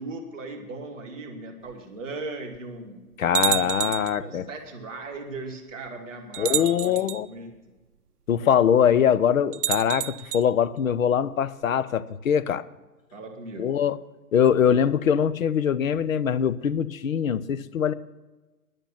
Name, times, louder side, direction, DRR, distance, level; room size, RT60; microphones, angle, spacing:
voice 1, 0.0-3.0 3.4-3.7 4.2-7.7 13.1-13.7, right 2 dB, 5° left, -6 dB, 0.5 m, -38 dB
sound 1, 1.7-1.8 2.5-2.6 3.3-4.2 5.3-5.4 6.3-7.2 9.5-10.4, right 12 dB, 80° right, 0.7 m, -28 dB
voice 2, 3.2-4.5 6.4-7.3 8.3-12.6 13.6-14.0 14.3-17.9, left 8 dB, 60° left, 17 dB, 0.7 m, -22 dB
10.5 x 8.9 x 7.2 m, 1.2 s
hypercardioid pair, 150°, 46 cm